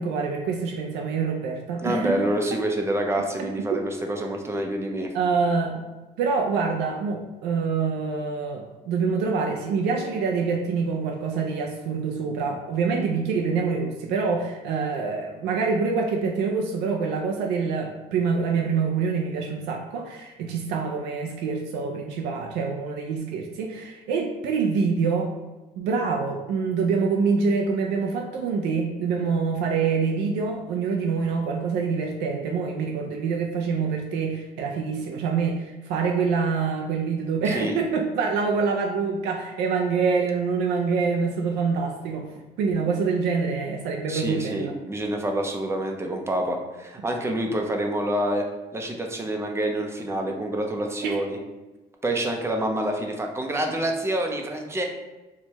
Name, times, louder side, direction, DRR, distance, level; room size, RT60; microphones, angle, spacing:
voice 1, 0.0-2.3 3.7-3.8 5.1-5.8 6.2-25.3 25.8-42.3 42.6-44.7 51.0-51.2, right 5 dB, 90° right, 1 dB, 0.4 m, -26 dB
voice 2, 1.8-5.1 37.5-37.7 44.1-48.5 48.7-51.4 52.0-54.8, right 1 dB, 15° right, 2 dB, 0.5 m, -27 dB
4.5 x 2.2 x 2.9 m, 1.1 s
cardioid pair, 110°, 17 cm